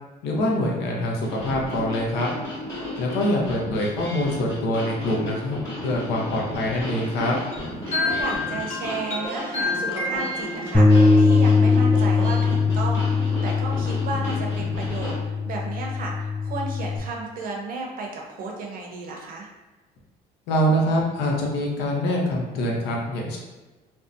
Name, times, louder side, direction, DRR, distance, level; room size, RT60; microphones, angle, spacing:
voice 1, 0.2-2.3 3.0-7.4 20.5-23.4, left 1 dB, 85° left, -2 dB, 0.7 m, -24 dB
sound 1, 1.2-15.2, left 1 dB, 20° left, 1.0 m, -34 dB
sound 2, 7.5-11.0, left 3 dB, 40° left, 0.7 m, -29 dB
voice 2, 7.9-19.5, right 3 dB, 60° right, 0 dB, 0.6 m, -33 dB
Bass guitar, 10.7-17.0, left 4 dB, 5° left, 0.3 m, -20 dB
2.6 x 2.1 x 2.4 m, 1.2 s
cardioid pair, 110°, 17 cm